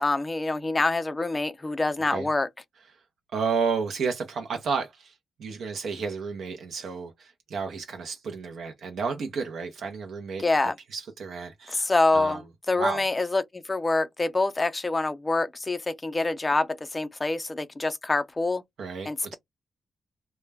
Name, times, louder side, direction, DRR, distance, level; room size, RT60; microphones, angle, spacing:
voice 1, 0.0-2.5 10.4-10.7 11.7-12.4 12.7-18.6 19.1-19.3, left 2 dB, 20° left, 0.4 m, -26 dB
voice 2, 3.3-11.9 12.1-12.4 12.7-13.1 18.8-19.3, right 5 dB, 75° right, 0.6 m, -32 dB
2.2 x 2.1 x 3.3 m
cardioid pair, 100°, 0 cm